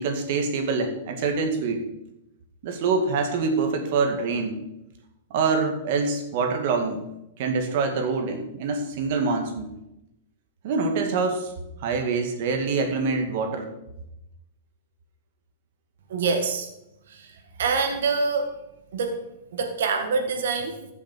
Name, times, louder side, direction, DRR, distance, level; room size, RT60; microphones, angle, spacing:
voice 1, 0.0-1.9 2.6-4.6 5.3-7.0 7.4-9.7 10.6-11.5 11.8-13.7, right 4 dB, 55° right, 5 dB, 2.1 m, -25 dB
voice 2, 16.1-16.7 17.6-18.5 18.9-19.2 19.5-20.8, right 4 dB, 80° right, 5 dB, 1.8 m, -25 dB
14.5 x 7.3 x 4.5 m, 0.87 s
supercardioid pair, 160°, 0 cm